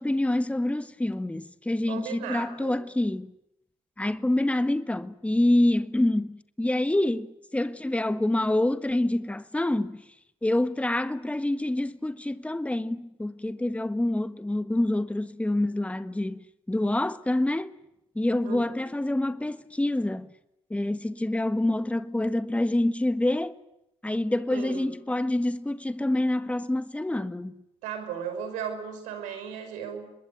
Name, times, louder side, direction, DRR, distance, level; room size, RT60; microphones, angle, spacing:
voice 1, 0.0-3.3 4.0-10.0 10.4-17.7 18.1-20.3 20.7-23.5 24.0-27.6, left 1 dB, 10° left, 1.5 m, -27 dB
voice 2, 1.9-2.8 18.4-18.8 24.5-24.9 27.8-30.1, right 7 dB, 80° right, 5.4 m, -36 dB
26.0 x 21.0 x 9.2 m
hypercardioid pair, 50°, 13 cm